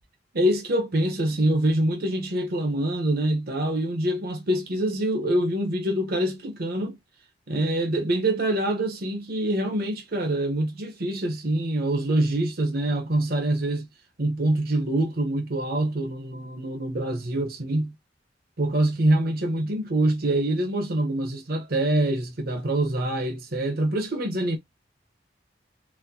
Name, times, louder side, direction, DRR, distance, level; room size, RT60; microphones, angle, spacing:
voice 1, 0.3-7.0 7.5-13.9 14.2-17.9 18.6-24.6, right 1 dB, 60° right, 0.9 m, -25 dB
4.2 x 2.1 x 2.7 m
head